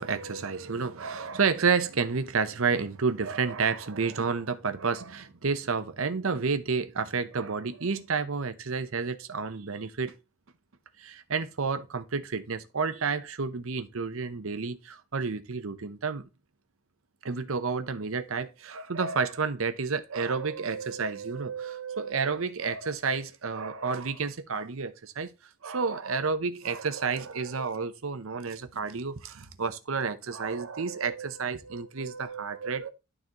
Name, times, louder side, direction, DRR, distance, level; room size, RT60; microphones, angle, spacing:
voice 1, 0.0-10.2 11.0-16.3 17.2-25.3 25.6-32.9, right 5 dB, 70° right, 0.8 m, -30 dB
12.0 x 4.1 x 2.9 m
head